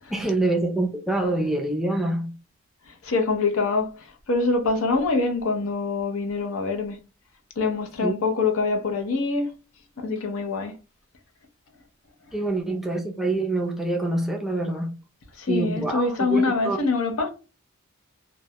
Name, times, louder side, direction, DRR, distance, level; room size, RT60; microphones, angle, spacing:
voice 1, 0.1-2.4 8.0-8.2 12.3-15.0 15.5-16.8, right 2 dB, ahead, 0.3 m, -26 dB
voice 2, 2.9-7.0 7.6-9.5 10.0-10.7 15.4-17.3, left 3 dB, 85° left, 0.5 m, -25 dB
2.2 x 2.1 x 2.7 m
head